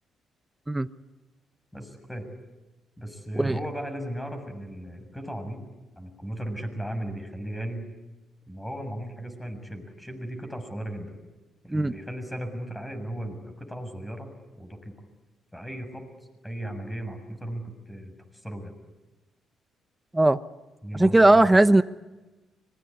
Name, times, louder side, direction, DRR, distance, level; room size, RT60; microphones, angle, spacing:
voice 1, 1.7-2.3 3.0-5.6 6.0-7.8 8.5-11.2 11.6-14.9 15.5-16.0 16.4-18.1 18.4-18.8 20.8-21.6, right 1 dB, 10° left, 6.8 m, -36 dB
voice 2, 20.9-21.8, right 2 dB, 10° right, 0.9 m, -18 dB
25.0 x 22.0 x 9.8 m
cardioid pair, 90°, 0 cm